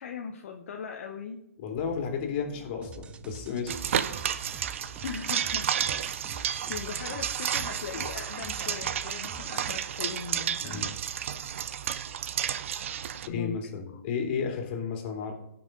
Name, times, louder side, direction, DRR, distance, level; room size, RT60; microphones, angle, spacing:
voice 1, 0.0-1.4 5.0-5.7 6.2-10.9 13.2-13.8, left 6 dB, 55° left, 3 dB, 1.1 m, -39 dB
voice 2, 1.6-4.2 10.6-10.9 13.3-15.3, left 6 dB, 40° left, 3 dB, 2.8 m, -33 dB
sound 1, 1.7-9.0, equal, 10° left, 2.5 m, -53 dB
sound 2, 2.8-9.7, right 5 dB, 15° right, 0.5 m, -47 dB
sound 3, 3.7-13.3, right 9 dB, 55° right, 0.7 m, -32 dB
16.5 x 6.0 x 4.0 m, 0.84 s
hypercardioid pair, 135°, 8 cm